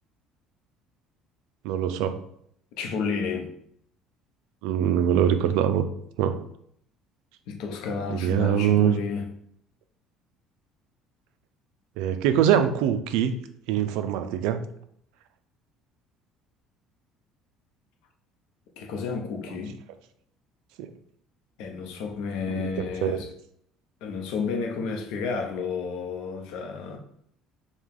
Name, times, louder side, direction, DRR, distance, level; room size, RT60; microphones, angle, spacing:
voice 1, 1.6-2.2 4.6-5.9 6.2-6.4 8.1-9.0 12.0-13.3 13.7-14.6 20.8-20.9 22.5-23.2, right 9 dB, 85° right, 0.4 m, -23 dB
voice 2, 2.8-3.5 7.5-9.3 18.8-19.8 21.6-23.3 24.0-27.0, left 5 dB, 75° left, 0.7 m, -31 dB
4.7 x 2.3 x 3.6 m
cardioid pair, 125°, 0 cm